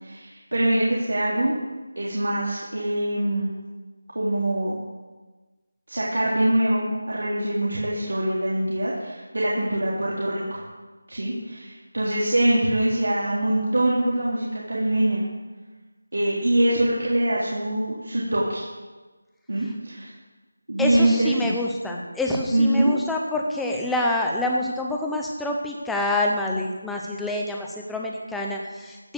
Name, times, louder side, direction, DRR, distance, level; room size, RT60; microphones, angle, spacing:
voice 1, 0.0-1.5 2.0-3.5 4.1-4.8 5.9-10.6 11.1-15.2 16.1-18.7 19.5-20.1 20.7-21.5 22.5-22.9, right 1 dB, 90° right, -6 dB, 3.8 m, -23 dB
voice 2, 20.8-29.1, left 1 dB, ahead, -1 dB, 0.6 m, -26 dB
15.0 x 6.3 x 8.0 m, 1.3 s
figure-of-eight pair, 180°, 0 cm